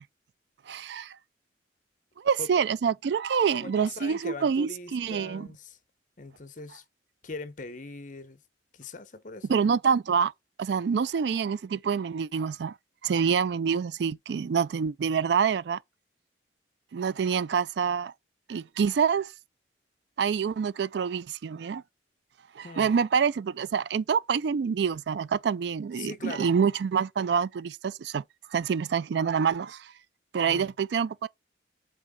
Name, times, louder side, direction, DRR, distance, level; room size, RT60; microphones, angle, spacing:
voice 1, 0.7-1.2 2.2-5.5 9.5-10.3 10.6-12.7 13.0-15.8 16.9-18.1 18.5-19.3 20.2-21.8 22.6-28.2 28.5-29.9 30.3-31.3, right 6 dB, 65° right, 0.3 m, -26 dB
voice 2, 3.5-5.8 6.2-6.8 7.2-8.4 8.7-9.6 22.6-23.0 26.0-26.5 30.5-30.7, left 3 dB, 45° left, 0.8 m, -41 dB
7.4 x 4.0 x 3.6 m
head